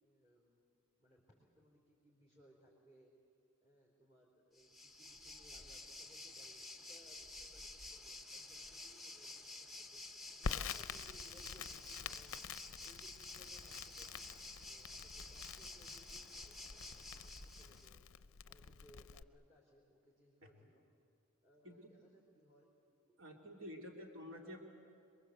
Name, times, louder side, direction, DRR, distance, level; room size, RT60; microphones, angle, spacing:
voice 1, 0.0-0.6 1.0-3.1 3.6-12.4 12.8-18.0 18.5-20.9 21.4-23.1 23.7-24.0, equal, 20° right, -5 dB, 4.0 m, -66 dB
Waves surf, 4.6-17.9, left 2 dB, ahead, 0.9 m, -51 dB
Crackle, 10.4-19.2, left 6 dB, 60° left, 0.5 m, -47 dB
voice 2, 21.6-22.0 23.2-24.6, left 1 dB, 65° right, 1 dB, 2.9 m, -50 dB
27.5 x 22.5 x 8.1 m, 2.3 s
head